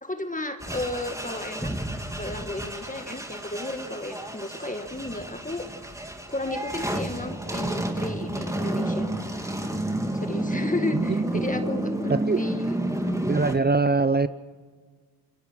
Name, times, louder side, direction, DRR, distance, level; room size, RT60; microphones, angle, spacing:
voice 1, 0.0-1.7 2.2-5.7 6.3-9.1 10.1-12.7, left 2 dB, 20° left, 7 dB, 1.8 m, -33 dB
sound 1, 0.6-13.5, right 1 dB, 10° right, 3.1 m, -30 dB
voice 2, 12.1-12.4 13.3-14.3, right 3 dB, 25° right, 13 dB, 0.7 m, -22 dB
30.0 x 20.0 x 6.2 m, 1.5 s
cardioid pair, 60°, 39 cm